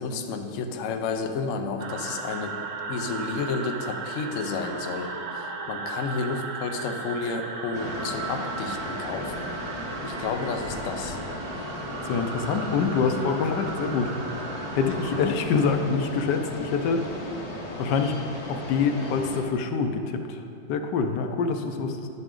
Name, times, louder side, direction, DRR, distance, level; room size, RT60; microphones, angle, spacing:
voice 1, 0.0-2.6 2.9-9.5 10.0-11.2, left 4 dB, 90° left, 5 dB, 0.6 m, -31 dB
sound 1, 1.8-15.3, right 4 dB, 65° right, 0.8 m, -36 dB
sound 2, 7.7-19.4, left 1 dB, 35° left, 0.6 m, -36 dB
voice 2, 12.0-14.1 14.7-17.0 17.8-18.2 18.5-22.1, left 5 dB, 70° left, 6 dB, 1.2 m, -26 dB
10.5 x 8.1 x 3.8 m, 2.5 s
omnidirectional pair, 2.2 m